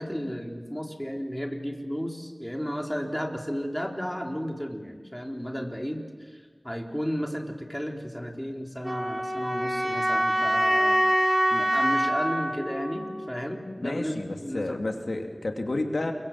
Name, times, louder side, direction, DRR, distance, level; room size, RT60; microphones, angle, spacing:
voice 1, 0.0-11.0 11.5-14.8, equal, 5° left, 1 dB, 3.9 m, -33 dB
sound 1, 8.8-13.8, equal, 20° right, 3.0 m, -25 dB
voice 2, 13.8-16.1, left 2 dB, 90° left, 3 dB, 2.5 m, -30 dB
29.0 x 23.5 x 7.6 m, 1.5 s
wide cardioid pair, 50°, 0 cm